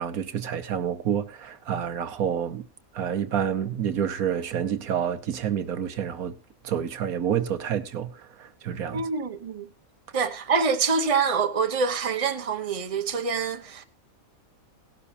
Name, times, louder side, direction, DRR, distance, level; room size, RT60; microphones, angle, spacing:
voice 1, 0.0-2.6 2.9-6.3 6.6-8.1 8.4-9.1, right 9 dB, 80° right, 1.5 m, -28 dB
voice 2, 8.9-9.7 10.1-13.8, right 5 dB, 25° right, 1.1 m, -26 dB
18.0 x 12.0 x 2.7 m
omnidirectional pair, 1.5 m